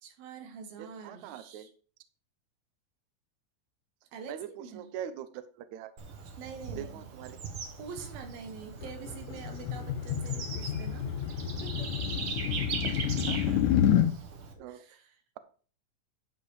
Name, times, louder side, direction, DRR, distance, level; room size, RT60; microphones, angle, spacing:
voice 1, 0.0-1.7 4.1-4.9 6.4-7.0 7.8-11.1 11.6-12.3 13.7-14.1 14.6-15.1, right 5 dB, 90° right, 6 dB, 3.3 m, -46 dB
voice 2, 0.8-1.7 4.3-5.9 6.7-7.4 12.8-13.6 14.6-14.8, right 10 dB, 70° right, 12 dB, 1.9 m, -42 dB
Bird / Insect, 6.0-14.5, right 5 dB, 55° right, 1.7 m, -40 dB
sound 1, 8.8-14.1, left 10 dB, 75° left, 2.0 m, -29 dB
11.0 x 5.3 x 4.8 m, 0.40 s
omnidirectional pair, 4.1 m